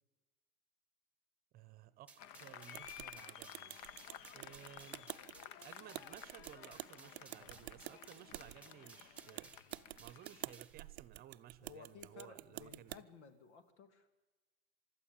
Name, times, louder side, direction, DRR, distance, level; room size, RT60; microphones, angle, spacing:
voice 1, 1.5-3.8 4.3-5.1 5.6-9.6 10.0-13.0, right 12 dB, 25° right, 16 dB, 0.8 m, -57 dB
sound 1, 2.1-10.8, right 4 dB, 5° right, 1.1 m, -61 dB
Applause, 2.2-10.6, left 10 dB, 50° left, 1.0 m, -54 dB
sound 2, 2.7-13.0, right 18 dB, 70° right, 0.6 m, -50 dB
voice 2, 11.6-14.1, left 6 dB, 85° left, 10 dB, 2.5 m, -57 dB
23.5 x 12.5 x 9.1 m, 1.2 s
supercardioid pair, 150°, 34 cm